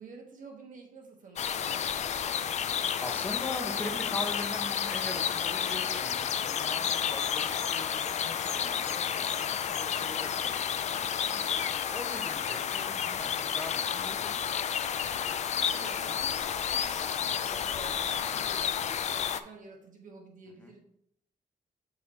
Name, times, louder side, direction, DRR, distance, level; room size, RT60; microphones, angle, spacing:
voice 1, 0.0-2.3 15.5-20.8, right 3 dB, 65° right, 1 dB, 1.4 m, -50 dB
sound 1, 1.4-19.4, left 8 dB, 50° left, 0.4 m, -31 dB
voice 2, 2.6-11.4 11.9-14.4 20.6-20.7, left 1 dB, 10° left, 3 dB, 1.0 m, -42 dB
7.0 x 3.2 x 4.2 m, 0.73 s
cardioid pair, 105°, 15 cm